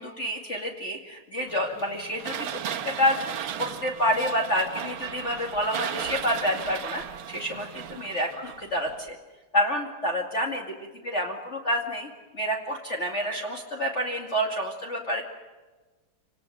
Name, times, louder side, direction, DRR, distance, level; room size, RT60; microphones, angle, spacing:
voice 1, 0.0-9.2 9.5-10.6 11.0-15.2, equal, 30° left, 1 dB, 2.5 m, -28 dB
sound 1, 1.5-9.1, right 9 dB, 65° right, 1.9 m, -36 dB
28.0 x 19.0 x 9.1 m, 1.3 s
omnidirectional pair, 2.4 m